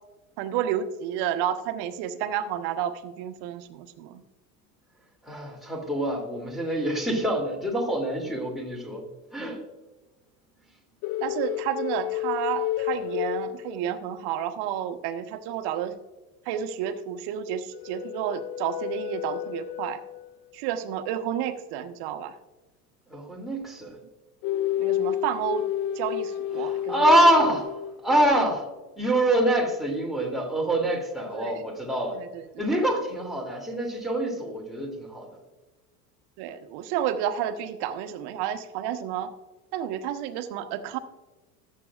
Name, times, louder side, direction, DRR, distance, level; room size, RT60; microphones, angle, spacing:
voice 1, 0.4-4.2 9.4-9.5 11.2-16.0 16.5-20.0 20.5-22.4 24.8-25.6 25.9-26.9 31.3-31.7 32.1-32.4 36.4-39.3 39.7-41.0, right 10 dB, 60° right, 9 dB, 1.1 m, -31 dB
voice 2, 5.2-9.0 9.3-9.6 23.1-24.0 26.6-28.6 29.0-32.2 32.6-35.3, right 1 dB, ahead, -1 dB, 2.8 m, -25 dB
sound 1, 11.0-14.2 17.7-20.3 24.4-28.2, left 12 dB, 55° left, 0.6 m, -31 dB
19.0 x 7.7 x 2.4 m, 1.2 s
hypercardioid pair, 80°, 45 cm